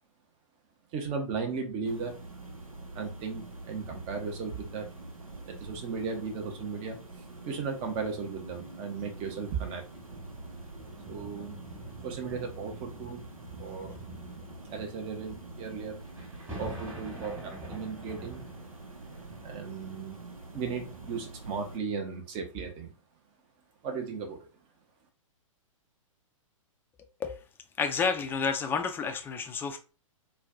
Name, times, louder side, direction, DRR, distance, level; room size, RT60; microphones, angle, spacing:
voice 1, 0.9-2.1 2.9-4.9 5.5-7.0 7.4-9.8 11.1-11.6 12.0-13.2 13.6-13.9 14.7-16.0 16.6-18.4 19.4-20.2 20.5-22.9 23.8-24.5, right 5 dB, 30° right, 0.8 m, -36 dB
sound 1, 1.8-21.8, right 2 dB, 90° right, 0.8 m, -46 dB
sound 2, 8.9-21.7 22.4-22.5, right 2 dB, 15° right, 1.5 m, -48 dB
voice 2, 27.8-29.8, left 5 dB, 10° left, 0.4 m, -30 dB
4.3 x 2.3 x 2.5 m
figure-of-eight pair, 115°, 17 cm